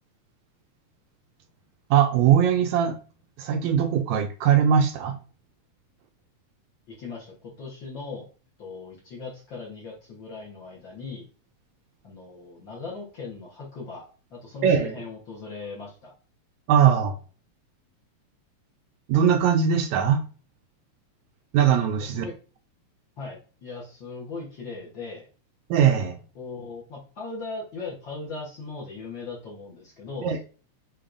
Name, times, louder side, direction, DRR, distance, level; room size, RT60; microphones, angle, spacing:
voice 1, 1.9-3.0 3.4-5.2 14.6-15.0 16.7-17.2 19.1-20.2 21.5-22.3 25.7-26.2 30.2-30.4, right 8 dB, 80° right, 5 dB, 1.8 m, -20 dB
voice 2, 6.9-8.3 8.6-11.3 12.0-16.1 22.0-22.3 23.2-25.3 26.3-30.4, left 4 dB, 55° left, -4 dB, 1.4 m, -38 dB
6.8 x 3.0 x 2.5 m, 0.37 s
omnidirectional pair, 3.4 m